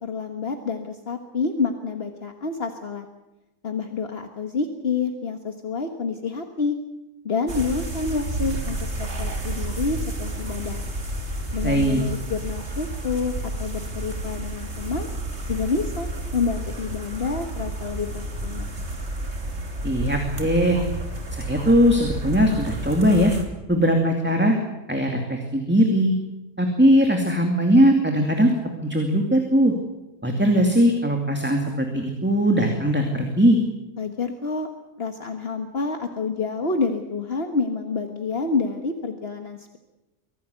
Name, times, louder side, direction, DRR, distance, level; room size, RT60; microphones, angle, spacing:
voice 1, 0.0-3.1 3.6-6.8 7.2-10.8 11.5-15.1 15.5-18.7 34.0-34.7 35.0-39.8, left 4 dB, 50° left, 5 dB, 1.7 m, -28 dB
sound 1, 7.5-23.4, right 1 dB, 60° right, 3.4 m, -31 dB
voice 2, 11.6-12.0 19.8-20.8 21.3-23.3 23.7-24.6 24.9-26.1 26.6-28.5 28.8-29.7 30.2-33.6, equal, 10° right, 2 dB, 2.5 m, -20 dB
25.0 x 17.0 x 8.2 m, 1.0 s
omnidirectional pair, 1.3 m